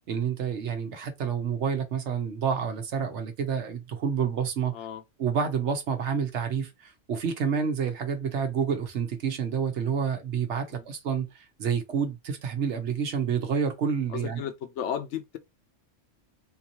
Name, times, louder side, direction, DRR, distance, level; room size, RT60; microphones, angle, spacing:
voice 1, 0.1-4.7 5.2-14.4, right 7 dB, 70° right, 1.0 m, -29 dB
voice 2, 4.7-5.0 10.7-10.8 14.1-15.4, left 9 dB, 70° left, 1.0 m, -34 dB
3.8 x 2.6 x 2.8 m
omnidirectional pair, 1.3 m